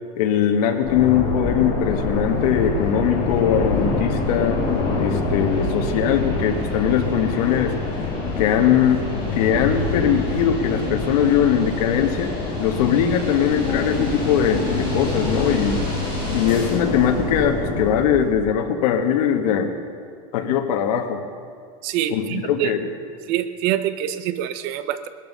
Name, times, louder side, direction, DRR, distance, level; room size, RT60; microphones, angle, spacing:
voice 1, 0.2-4.6 5.0-7.8 8.4-12.3 12.6-15.8 16.3-19.7 20.3-21.2 22.1-22.8, left 8 dB, 70° left, 4 dB, 1.8 m, -21 dB
sound 1, 0.8-18.0, left 3 dB, 30° left, 2.5 m, -26 dB
sound 2, 1.5-18.4, equal, 25° right, 5.3 m, -36 dB
voice 2, 21.8-22.7 23.3-25.1, right 12 dB, 40° right, 12 dB, 0.7 m, -25 dB
19.0 x 14.0 x 5.5 m, 2.2 s
supercardioid pair, 180°, 20 cm